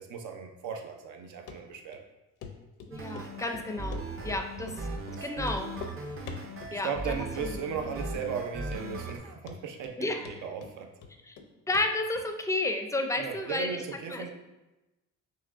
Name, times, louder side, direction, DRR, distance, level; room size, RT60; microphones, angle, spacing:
voice 1, 0.0-2.1 4.2-4.4 5.1-5.5 6.7-10.9 13.2-14.3, right 6 dB, 80° right, 4 dB, 0.7 m, -37 dB
Run, 1.5-1.6 1.9-2.0 2.4-2.5 2.8-3.3 3.5-4.4 4.7-4.8 5.1-5.2 5.4-6.0 6.3-6.8 7.1-7.6 7.8-7.9 8.4-8.5 8.7-9.2 9.5-10.0 10.3-11.5 11.7-11.9 12.2-12.3, left 6 dB, 85° left, 0.6 m, -44 dB
voice 2, 2.9-4.9 5.2-5.7 6.7-7.5 10.0-10.3 11.3-11.4 11.7-13.8 14.1-14.3, left 2 dB, 10° left, 5 dB, 0.4 m, -32 dB
sound 1, 2.9-9.2, right 2 dB, 45° right, 0.8 m, -38 dB
5.7 x 3.1 x 2.5 m, 1.0 s
cardioid pair, 90°, 30 cm